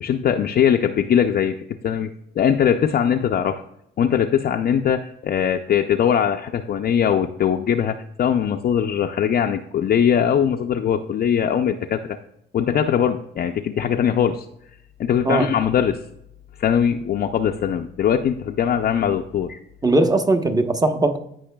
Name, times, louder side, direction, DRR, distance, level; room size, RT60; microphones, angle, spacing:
voice 1, 0.0-2.1 2.4-3.6 4.0-12.2 12.5-14.5 15.0-16.0 16.6-19.6, left 8 dB, 50° left, 4 dB, 0.5 m, -21 dB
voice 2, 19.8-21.2, right 2 dB, 20° right, 6 dB, 1.0 m, -19 dB
15.0 x 5.5 x 2.3 m, 0.78 s
cardioid pair, 90°, 20 cm